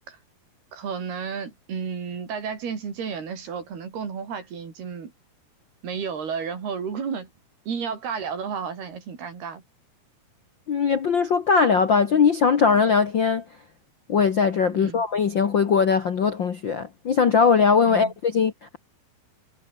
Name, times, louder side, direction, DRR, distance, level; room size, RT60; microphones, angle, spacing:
voice 1, 0.7-5.1 5.8-7.3 7.7-9.6 14.8-15.0 17.9-18.1, right 6 dB, 75° right, 6.4 m, -32 dB
voice 2, 10.7-13.4 14.1-18.8, left 5 dB, 90° left, 1.0 m, -20 dB
omnidirectional pair, 4.6 m